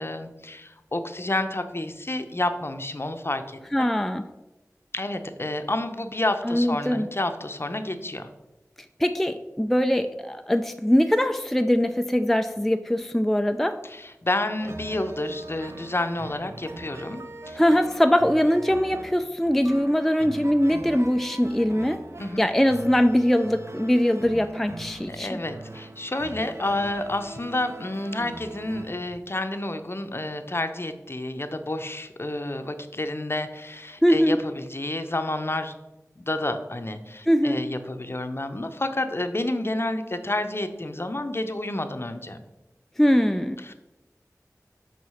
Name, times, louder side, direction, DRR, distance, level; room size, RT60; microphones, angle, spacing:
voice 1, 0.0-3.9 4.9-8.3 13.8-17.6 22.2-22.4 25.1-35.7 36.2-42.4 43.6-43.7, left 1 dB, 40° left, 8 dB, 0.7 m, -30 dB
voice 2, 3.7-4.2 6.4-7.1 9.0-13.8 17.6-22.0 22.4-25.4 34.0-34.4 37.3-37.6 43.0-43.6, equal, 5° left, 7 dB, 0.3 m, -22 dB
sound 1, 14.6-28.9, right 2 dB, 50° right, 0.6 m, -41 dB
5.8 x 4.7 x 5.6 m, 1.0 s
wide cardioid pair, 50°, 6 cm